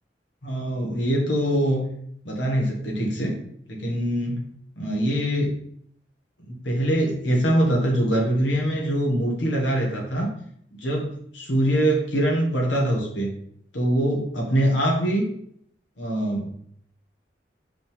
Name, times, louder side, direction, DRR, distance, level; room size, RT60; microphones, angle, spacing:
voice 1, 0.4-1.9 2.3-3.3 3.7-4.5 4.8-5.6 6.4-10.3 10.7-13.3 13.7-15.3 16.0-16.5, right 1 dB, 85° left, -2 dB, 1.8 m, -23 dB
5.9 x 5.5 x 3.6 m, 0.67 s
head